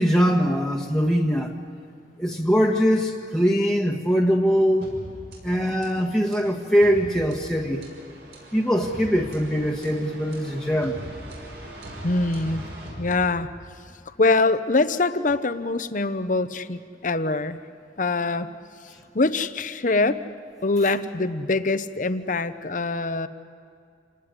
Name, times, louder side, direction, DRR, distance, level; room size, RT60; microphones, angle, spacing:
voice 1, 0.0-1.5 2.2-4.9 5.4-7.8 8.5-11.0, equal, 5° left, -1 dB, 1.6 m, -22 dB
sound 1, 4.8-13.7, right 1 dB, 65° right, 7.1 m, -41 dB
voice 2, 12.0-12.6 13.0-13.5 14.2-17.6 18.0-18.5 19.1-20.2 20.6-23.3, left 3 dB, 45° left, 11 dB, 0.9 m, -23 dB
28.0 x 19.0 x 9.8 m, 2.4 s
head